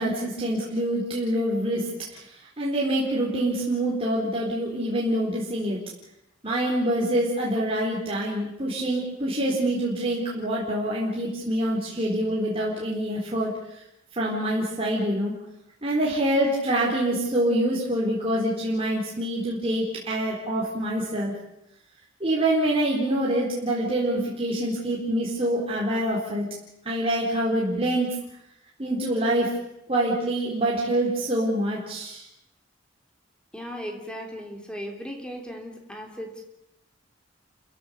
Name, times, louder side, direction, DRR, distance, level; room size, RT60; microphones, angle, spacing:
voice 1, 0.0-2.2 2.6-5.8 6.4-13.5 14.1-15.3 15.8-21.3 22.2-26.5 26.8-28.1 28.8-29.5 29.9-32.2, right 1 dB, 30° right, -5 dB, 4.3 m, -25 dB
voice 2, 33.5-36.4, equal, 5° left, 2 dB, 3.3 m, -37 dB
29.5 x 16.0 x 7.1 m, 0.83 s
head